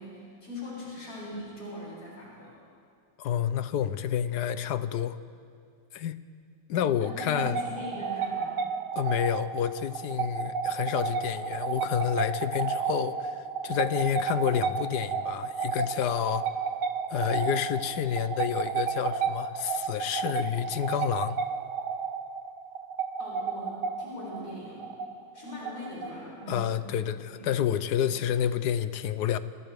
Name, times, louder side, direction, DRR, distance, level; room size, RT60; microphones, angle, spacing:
voice 1, 0.0-2.6 7.0-8.6 23.2-24.8 25.3-26.8 27.3-27.6, left 1 dB, 45° left, -7 dB, 7.3 m, -41 dB
voice 2, 3.2-5.2 5.9-6.2 6.7-7.6 9.0-16.5 17.1-21.4 26.5-29.4, left 9 dB, 65° left, 12 dB, 1.1 m, -29 dB
sound 1, 7.1-26.4, right 6 dB, 80° right, 1.8 m, -32 dB
28.0 x 28.0 x 3.6 m, 2.3 s
omnidirectional pair, 2.3 m